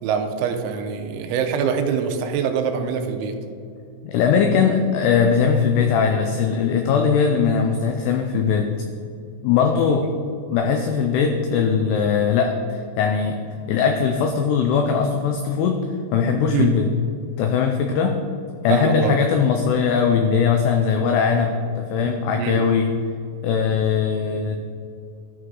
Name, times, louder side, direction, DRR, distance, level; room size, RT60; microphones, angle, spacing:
voice 1, 0.0-3.4 16.5-16.7 18.7-19.2 22.4-22.6, right 7 dB, 85° right, 6 dB, 2.9 m, -24 dB
voice 2, 4.0-8.7 9.4-10.1 10.5-13.4 13.7-15.9 16.1-16.9 17.4-18.2 18.6-22.9 23.4-24.6, left 6 dB, 85° left, 4 dB, 2.3 m, -20 dB
12.5 x 4.7 x 3.8 m, 2.5 s
omnidirectional pair, 5.3 m